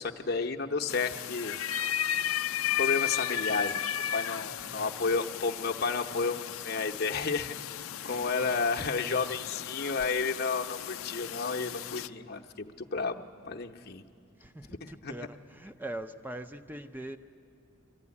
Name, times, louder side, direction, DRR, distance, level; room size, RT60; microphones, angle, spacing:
voice 1, 0.0-1.6 2.3-2.4 2.8-7.5 8.0-14.0 14.8-15.1, left 4 dB, 50° left, 2 dB, 0.8 m, -32 dB
sound 1, 0.9-12.1, left 10 dB, 75° left, 0.4 m, -35 dB
voice 2, 4.5-5.1 8.0-8.7 9.0-9.4 14.4-17.2, right 1 dB, 10° right, 9 dB, 0.6 m, -43 dB
22.0 x 15.5 x 9.7 m, 2.4 s
head